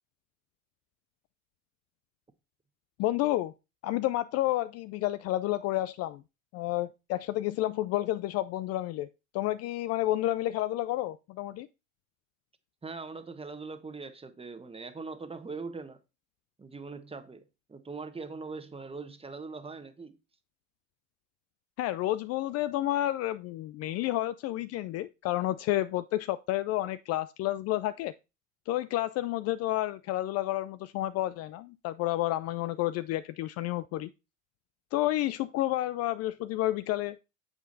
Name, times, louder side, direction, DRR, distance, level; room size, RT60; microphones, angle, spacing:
voice 1, 3.0-3.5 3.8-6.2 6.5-9.1 9.3-11.7 21.8-28.1 28.7-34.1 34.9-37.2, left 15 dB, 40° left, 0.4 m, -30 dB
voice 2, 12.8-16.0 16.6-17.4 17.7-20.2, right 4 dB, 15° right, 1.1 m, -41 dB
8.7 x 7.5 x 2.6 m
hypercardioid pair, 80°, 40 cm